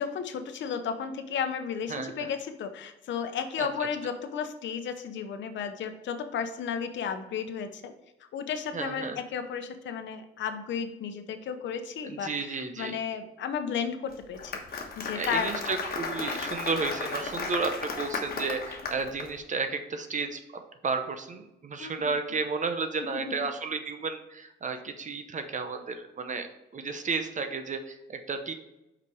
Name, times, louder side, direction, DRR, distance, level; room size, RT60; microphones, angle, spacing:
voice 1, 0.0-7.9 8.3-15.5 21.8-22.0 23.0-23.3, left 7 dB, 70° left, 8 dB, 0.8 m, -33 dB
voice 2, 1.9-2.3 3.6-3.7 8.7-9.2 12.0-13.0 15.1-26.5 26.7-28.5, right 4 dB, 40° right, 7 dB, 0.8 m, -32 dB
Applause, 14.1-19.3, left 4 dB, 50° left, 1.3 m, -35 dB
5.7 x 5.2 x 4.7 m, 0.92 s
cardioid pair, 90°, 20 cm